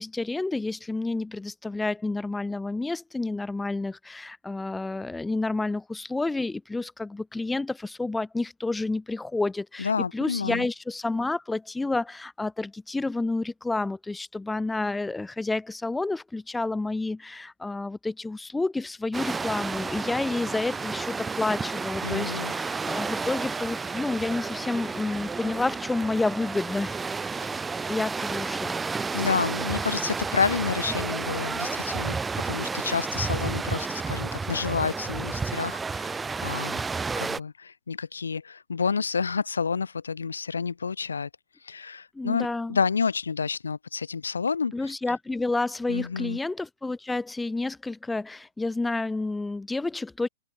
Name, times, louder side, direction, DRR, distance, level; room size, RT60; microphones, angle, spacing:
voice 1, 0.0-26.9 27.9-28.8 42.1-42.8 44.7-50.3, left 2 dB, 5° left, 2.1 m, -30 dB
voice 2, 9.8-10.7 22.0-22.5 29.1-32.2 32.4-36.8 37.2-41.3 41.6-44.9 45.9-46.4, left 5 dB, 85° left, 1.3 m, -29 dB
sound 1, 19.1-37.4, right 4 dB, 10° right, 1.3 m, -31 dB
hypercardioid pair, 115°, 0 cm